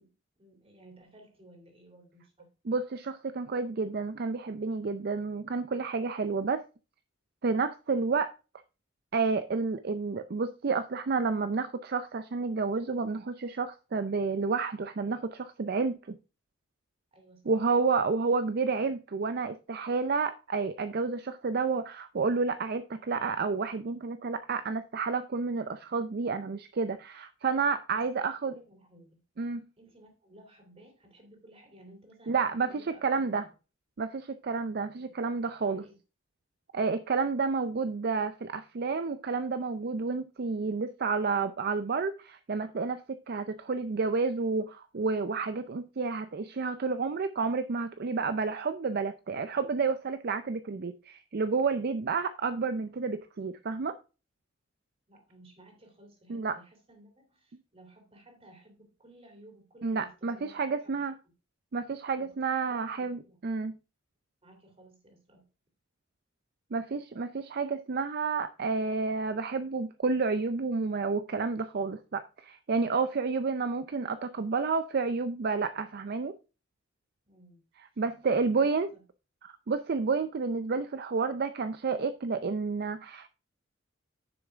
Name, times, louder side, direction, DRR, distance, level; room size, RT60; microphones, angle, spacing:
voice 1, 0.0-2.5 17.1-17.5 27.9-29.2 29.8-33.5 35.0-35.2 35.6-35.9 55.1-61.0 62.1-62.4 62.7-63.4 64.4-65.5 77.2-77.6 77.9-79.0, right 1 dB, 30° right, 3.0 m, -56 dB
voice 2, 2.7-6.6 7.4-8.3 9.1-16.2 17.5-28.5 29.4-29.6 32.3-33.5 34.0-35.8 36.7-54.0 56.3-56.6 59.8-61.1 61.7-63.7 66.7-76.3 78.0-78.9 79.4-83.3, right 4 dB, 55° right, 0.5 m, -30 dB
10.0 x 6.5 x 3.5 m
head